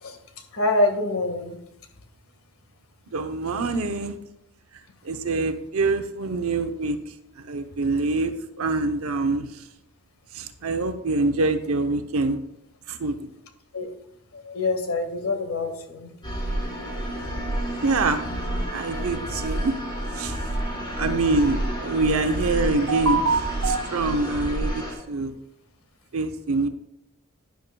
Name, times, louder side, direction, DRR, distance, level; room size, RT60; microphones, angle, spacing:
voice 1, 0.5-1.6 13.7-13.9 14.3-16.1, left 2 dB, 85° left, 5 dB, 1.6 m, -25 dB
voice 2, 3.1-4.2 5.0-7.0 7.4-9.6 10.3-12.4 12.9-13.3 17.8-18.2 18.7-19.7 20.1-20.4 21.0-25.4 26.1-26.7, right 3 dB, 85° right, 7 dB, 0.7 m, -25 dB
sound 1, 16.2-24.9, right 1 dB, 20° left, 4.1 m, -29 dB
12.0 x 10.0 x 2.3 m, 0.80 s
head